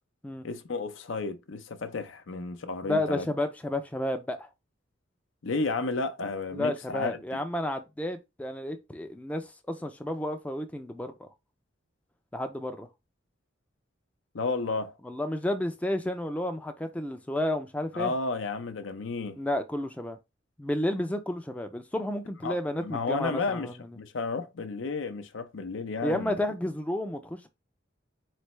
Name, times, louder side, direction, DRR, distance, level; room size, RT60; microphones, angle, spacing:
voice 1, 0.4-3.3 5.4-7.1 14.3-15.0 17.9-19.4 22.4-23.7 23.9-26.4, left 3 dB, 75° left, 0.6 m, -32 dB
voice 2, 2.9-4.5 6.5-11.3 12.3-12.9 15.0-18.1 19.3-20.2 20.6-23.7 26.0-27.5, left 1 dB, 5° left, 0.4 m, -31 dB
4.3 x 3.3 x 3.1 m
head